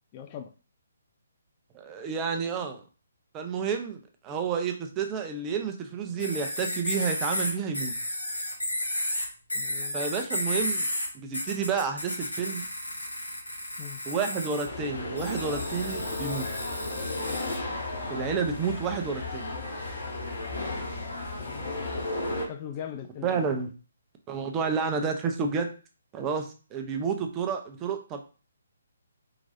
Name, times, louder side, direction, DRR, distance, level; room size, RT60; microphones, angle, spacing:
voice 1, 0.1-0.5 9.5-10.0 13.8-14.0 21.4-21.7 22.5-23.5, left 9 dB, 30° left, 7 dB, 0.4 m, -40 dB
voice 2, 1.7-2.8 3.3-8.0 9.9-10.9 11.2-12.6 14.1-16.4 18.1-19.5 23.2-23.7 24.3-25.7 26.1-28.2, right 5 dB, 20° right, 5 dB, 0.7 m, -30 dB
sound 1, 6.2-11.1 11.3-14.6 15.2-17.6, left 1 dB, 85° left, 2.0 m, -33 dB
sound 2, 14.6-22.4, left 2 dB, 65° left, 2.4 m, -34 dB
4.6 x 3.9 x 2.7 m, 0.35 s
figure-of-eight pair, 140°, 0 cm